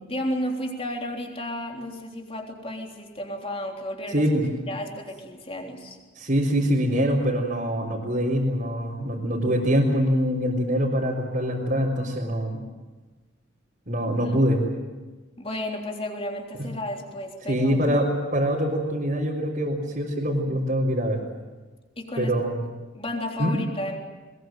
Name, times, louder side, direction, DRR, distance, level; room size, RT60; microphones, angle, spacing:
voice 1, 0.1-4.3 4.7-6.0 15.4-17.8 22.0-22.4 22.9-24.0, left 1 dB, 30° left, 2 dB, 3.5 m, -32 dB
voice 2, 4.1-4.4 6.1-12.6 13.9-14.6 17.5-18.1 18.3-21.2 22.2-22.6 23.4-23.6, equal, 45° right, -5 dB, 4.0 m, -24 dB
22.0 x 21.5 x 9.2 m, 1.3 s
head